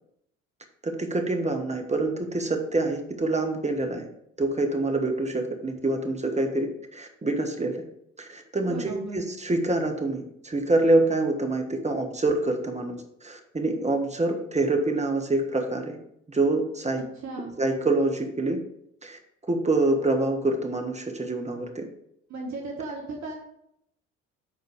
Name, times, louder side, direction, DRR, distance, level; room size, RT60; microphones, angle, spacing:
voice 1, 0.8-4.1 4.4-7.8 8.2-12.9 13.2-16.0 16.3-17.0 17.6-18.6 19.0-19.2 19.5-21.8, right 2 dB, 15° right, 3 dB, 1.5 m, -26 dB
voice 2, 8.6-9.2 17.1-17.5 22.3-23.3, right 3 dB, 45° right, -1 dB, 1.6 m, -35 dB
8.5 x 4.4 x 5.1 m, 0.74 s
hypercardioid pair, 55°, 39 cm